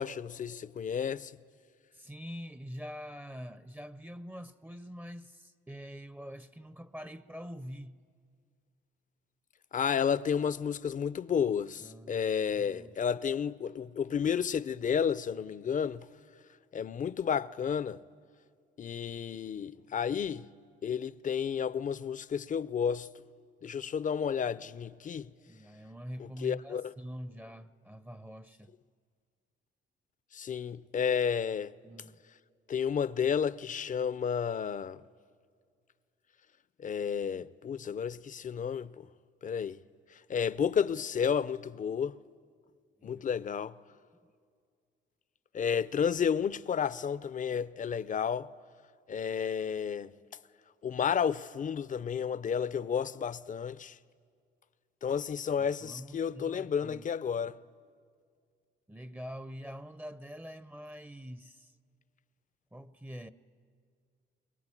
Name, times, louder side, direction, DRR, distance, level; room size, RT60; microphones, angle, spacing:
voice 1, 0.0-1.3 9.7-16.1 16.7-18.0 18.8-20.5 20.8-23.1 23.6-25.3 26.4-26.9 30.3-31.7 32.7-35.0 36.8-38.9 39.4-39.8 40.3-42.2 43.0-43.7 45.5-48.5 49.1-50.1 50.8-54.0 55.0-57.6, left 7 dB, 40° left, 0.6 m, -31 dB
voice 2, 1.9-8.0 11.8-12.9 25.5-28.7 31.8-32.2 43.0-43.2 55.6-57.1 58.9-61.7 62.7-63.3, equal, 10° right, 0.7 m, -45 dB
22.5 x 22.5 x 9.9 m
cardioid pair, 90°, 20 cm